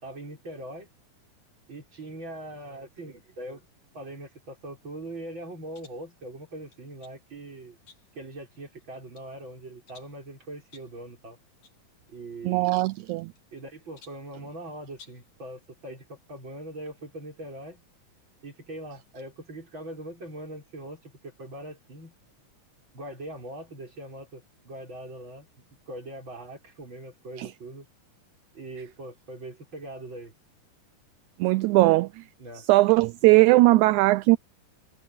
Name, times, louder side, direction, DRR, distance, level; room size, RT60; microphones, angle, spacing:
voice 1, 0.0-0.9 1.7-3.7 3.9-7.8 8.1-11.4 12.1-12.8 13.5-17.8 18.4-22.1 22.9-27.9 28.5-30.3 31.8-32.0 32.4-32.7, right 1 dB, 35° right, 7.0 m, -41 dB
sound 1, 5.7-6.1 6.7-7.2 7.9-8.3 8.8-9.3 9.9-10.2 10.7-11.0 11.6-11.8 12.1-12.2 13.1-13.6 14.0-14.3 14.9-15.3, left 5 dB, 60° left, 5.4 m, -55 dB
voice 2, 12.5-13.3 27.4-27.5 31.4-32.1 32.7-34.4, right 20 dB, 80° right, 1.8 m, -19 dB
omnidirectional pair, 3.7 m